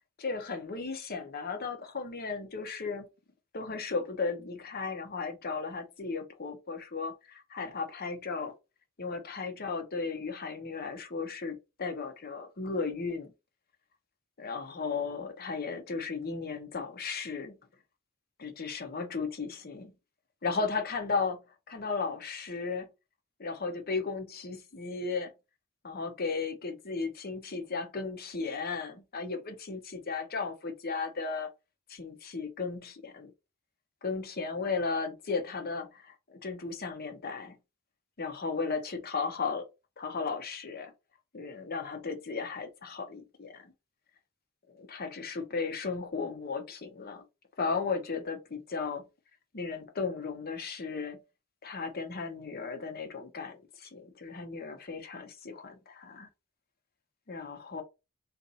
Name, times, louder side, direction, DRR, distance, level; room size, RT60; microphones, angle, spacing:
voice 1, 0.2-3.1 3.5-8.5 9.0-13.3 14.4-17.6 18.4-19.9 20.4-21.4 21.7-22.9 23.4-25.3 25.8-31.5 31.9-33.3 34.0-37.6 38.2-39.7 40.0-40.9 41.3-43.7 44.7-47.2 47.6-49.0 49.5-51.2 51.6-56.3 57.3-57.8, left 4 dB, 45° left, 0.8 m, -35 dB
4.0 x 2.6 x 4.1 m
head